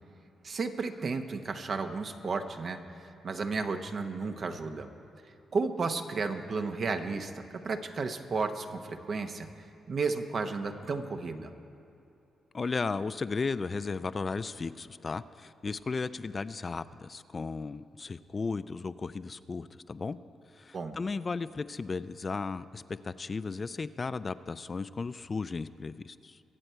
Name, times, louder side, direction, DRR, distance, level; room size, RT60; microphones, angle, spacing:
voice 1, 0.4-2.8 3.2-4.9 5.5-9.5 9.9-11.5 20.7-21.0, right 4 dB, 55° right, 7 dB, 0.9 m, -33 dB
voice 2, 12.5-20.2 20.5-26.4, left 4 dB, 40° left, 14 dB, 0.3 m, -35 dB
23.0 x 8.0 x 4.5 m, 2.9 s
cardioid pair, 70°, 0 cm